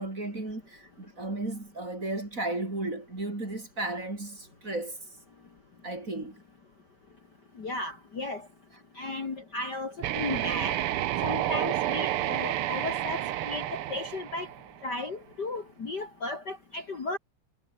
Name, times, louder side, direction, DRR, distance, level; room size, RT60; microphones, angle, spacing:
voice 1, 0.0-5.0 5.8-6.4 13.0-13.1, right 2 dB, 25° right, 4.4 m, -34 dB
voice 2, 7.6-8.5 9.0-10.8 11.2-14.5 14.8-17.2, left 2 dB, 35° left, 2.6 m, -35 dB
sound 1, 10.0-14.9, right 13 dB, 70° right, 1.4 m, -30 dB
omnidirectional pair, 3.5 m